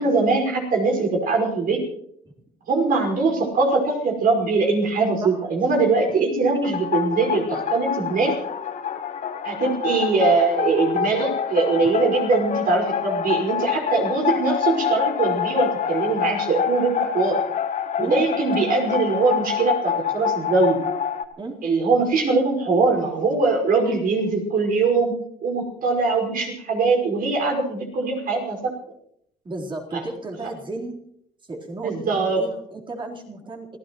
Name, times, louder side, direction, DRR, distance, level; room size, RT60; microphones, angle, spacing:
voice 1, 0.0-1.8 2.7-8.3 9.4-17.4 18.0-20.8 21.6-25.1 25.4-28.7 29.9-30.0 31.8-32.4, right 3 dB, 55° right, 1 dB, 5.6 m, -22 dB
sound 1, 6.6-21.2, left 8 dB, 45° left, 1.5 m, -26 dB
voice 2, 29.4-31.0 31.4-33.8, right 2 dB, 30° right, -1 dB, 4.1 m, -34 dB
28.0 x 16.5 x 3.1 m, 0.72 s
cardioid pair, 110°, 17 cm